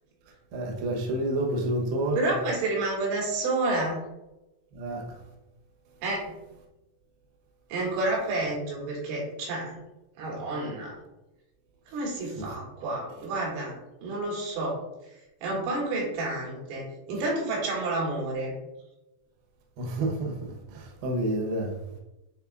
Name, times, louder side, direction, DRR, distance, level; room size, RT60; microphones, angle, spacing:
voice 1, 0.5-2.3 4.7-5.0 12.4-12.5 19.8-21.7, right 1 dB, 70° right, 2.6 m, -29 dB
voice 2, 2.2-4.0 6.0-6.3 7.7-9.8 10.2-10.9 11.9-13.7 14.0-14.8 15.4-18.6, right 2 dB, 90° right, 4.4 m, -29 dB
10.0 x 3.8 x 2.4 m
omnidirectional pair, 5.3 m